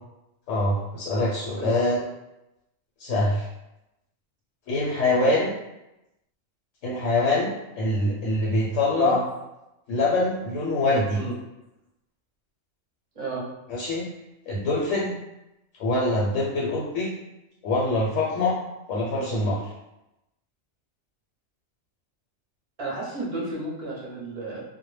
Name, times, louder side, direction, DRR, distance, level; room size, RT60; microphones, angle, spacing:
voice 1, 0.5-2.1 3.0-3.5 4.7-5.5 6.8-7.5 7.8-9.2 9.9-11.2 13.7-14.1 14.5-15.2 15.8-17.1 17.6-18.6 18.9-19.6, left 2 dB, 75° left, -5 dB, 0.9 m, -24 dB
voice 2, 22.8-24.6, right 3 dB, 35° right, -5 dB, 0.6 m, -32 dB
2.1 x 2.1 x 3.1 m, 0.92 s
omnidirectional pair, 1.3 m